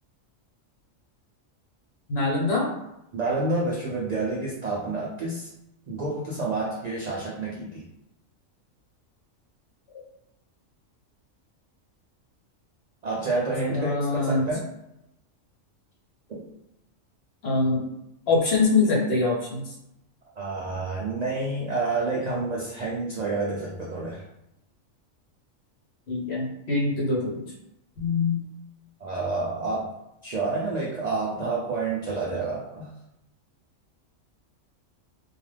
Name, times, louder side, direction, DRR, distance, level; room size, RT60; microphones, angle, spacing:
voice 1, 2.1-2.7 9.9-10.0 13.7-14.5 17.4-17.8 18.3-19.7 26.1-27.4 28.0-28.4, left 3 dB, 55° left, -4 dB, 1.0 m, -24 dB
voice 2, 3.1-5.5 5.9-7.8 13.0-14.7 16.3-16.5 20.4-24.2 29.0-29.9 30.2-32.9, right 3 dB, 80° right, -4 dB, 0.3 m, -29 dB
2.3 x 2.3 x 3.2 m, 0.84 s
omnidirectional pair, 1.3 m